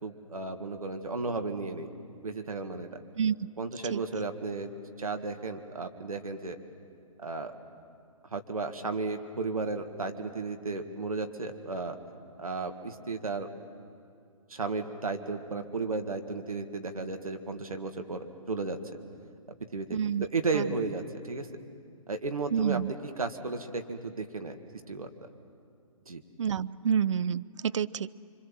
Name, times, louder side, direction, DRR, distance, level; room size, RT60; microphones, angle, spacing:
voice 1, 0.0-1.9 2.2-3.0 3.6-6.6 7.2-7.5 8.3-12.0 12.4-13.5 14.5-18.8 19.7-21.5 22.1-24.6 24.9-25.1 26.1-26.2, right 3 dB, 80° right, 6 dB, 1.9 m, -34 dB
voice 2, 3.2-3.5 3.9-4.0 19.9-20.3 20.5-20.6 22.5-22.9 26.4-28.2, right 8 dB, 60° right, 16 dB, 0.6 m, -28 dB
26.0 x 25.0 x 7.6 m, 2.4 s
figure-of-eight pair, 130°, 18 cm